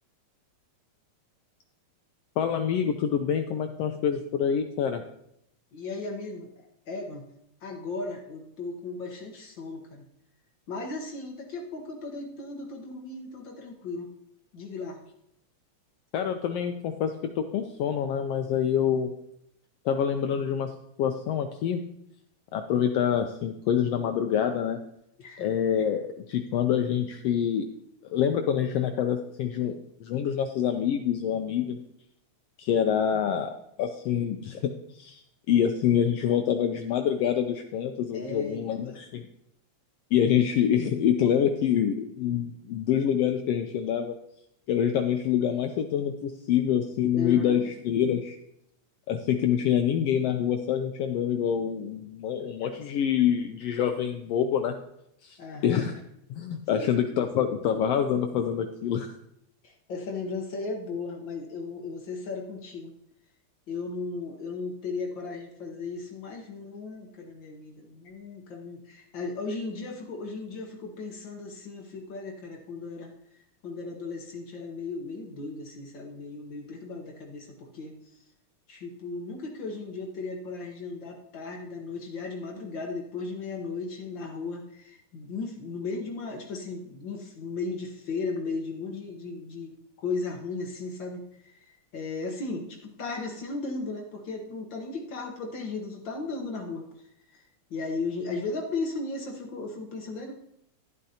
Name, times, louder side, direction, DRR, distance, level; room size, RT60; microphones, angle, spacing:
voice 1, 2.4-5.0 16.1-19.1 19.8-20.7 21.0-21.8 22.5-24.8 25.4-27.7 28.0-31.8 32.6-33.5 33.8-35.2 35.5-39.2 40.1-44.1 44.7-48.4 49.1-54.8 55.2-55.9 56.3-59.2, left 9 dB, 80° left, 6 dB, 1.4 m, -26 dB
voice 2, 5.7-6.5 6.9-7.2 7.6-10.0 10.7-14.1 14.5-15.0 25.2-25.7 38.1-39.0 47.1-47.7 52.4-52.8 55.4-55.9 56.7-57.8 59.6-62.9 63.7-78.2 78.7-89.7 90.0-97.4 97.7-100.3, left 3 dB, 65° left, 2 dB, 1.2 m, -36 dB
11.5 x 11.0 x 2.8 m, 0.79 s
omnidirectional pair, 3.4 m